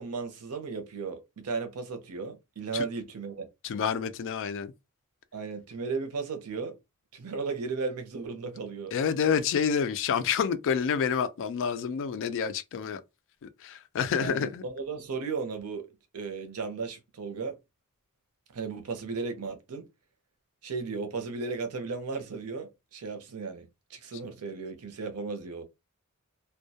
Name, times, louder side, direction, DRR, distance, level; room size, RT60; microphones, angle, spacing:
voice 1, 0.0-3.5 5.3-6.7 7.1-8.9 14.2-15.9 16.1-17.6 18.5-19.9 20.6-25.6, right 4 dB, 85° right, 0.6 m, -35 dB
voice 2, 3.6-4.7 8.9-13.0 13.4-14.6, left 7 dB, 60° left, 0.3 m, -28 dB
2.2 x 2.2 x 2.7 m
head